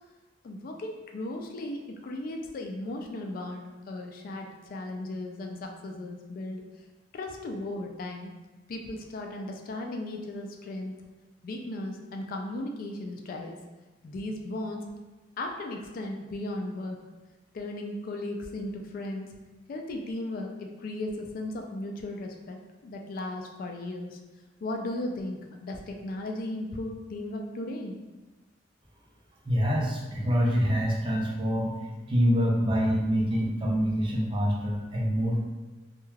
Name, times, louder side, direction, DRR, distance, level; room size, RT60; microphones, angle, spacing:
voice 1, 0.4-6.6 7.1-8.3 8.7-11.0 11.4-13.6 14.0-14.9 15.4-17.0 17.5-19.3 19.7-24.2 24.6-28.0, left 1 dB, 50° left, 2 dB, 0.3 m, -36 dB
voice 2, 29.4-31.7 32.1-35.4, equal, 30° right, -3 dB, 0.5 m, -25 dB
2.3 x 2.2 x 3.1 m, 1.2 s
head